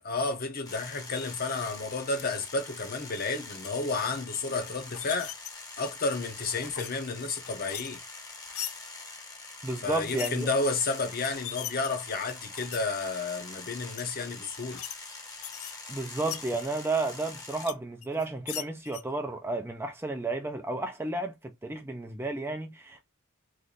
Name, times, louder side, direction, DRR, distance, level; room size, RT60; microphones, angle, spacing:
voice 1, 0.0-5.3 5.8-8.0 9.8-14.8, left 3 dB, 45° left, 0.8 m, -31 dB
sound 1, 0.6-17.7, left 3 dB, 20° left, 0.9 m, -44 dB
sound 2, 2.1-2.2 3.1-3.7 4.7-5.5 5.9-6.9 7.2-8.7 9.9-10.3 10.9-11.0 11.2-12.8 13.3-13.5 13.9-14.0 14.5-14.9 15.2-16.5 17.0-17.7 18.0-19.0, left 11 dB, 75° left, 0.5 m, -40 dB
voice 2, 9.6-10.5 15.9-23.0, right 2 dB, 10° right, 0.4 m, -32 dB
3.1 x 2.6 x 3.8 m
head